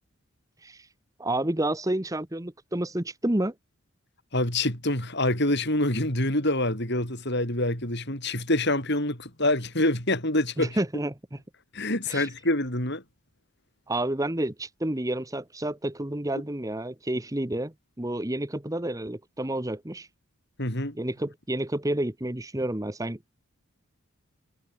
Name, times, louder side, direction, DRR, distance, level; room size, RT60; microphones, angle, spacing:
voice 1, 1.2-3.5 10.6-11.4 12.1-12.3 13.9-20.1 20.9-23.3, right 1 dB, 15° right, 1.0 m, -30 dB
voice 2, 4.3-10.8 11.7-13.0 20.6-20.9, left 1 dB, 50° left, 7.4 m, -26 dB
head